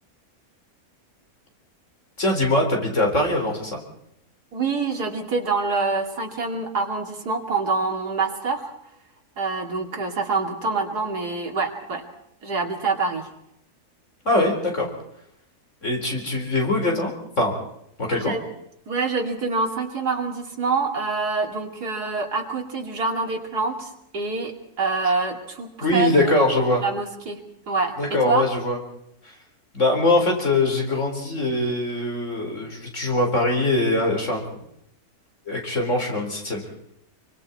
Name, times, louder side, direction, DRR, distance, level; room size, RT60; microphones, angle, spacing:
voice 1, 2.2-3.8 14.2-14.9 15.8-17.5 18.0-18.3 25.8-26.8 28.0-28.8 29.2-29.4 29.7-34.6 35.5-36.7, left 2 dB, 50° left, 1 dB, 4.3 m, -22 dB
voice 2, 4.5-8.7 9.4-12.0 12.4-13.3 18.2-18.4 18.9-23.9 24.1-24.5 24.8-26.4 26.8-27.4 27.7-27.9 28.2-28.5, right 4 dB, 85° right, 1 dB, 3.1 m, -26 dB
25.0 x 24.5 x 4.3 m, 0.77 s
omnidirectional pair, 1.6 m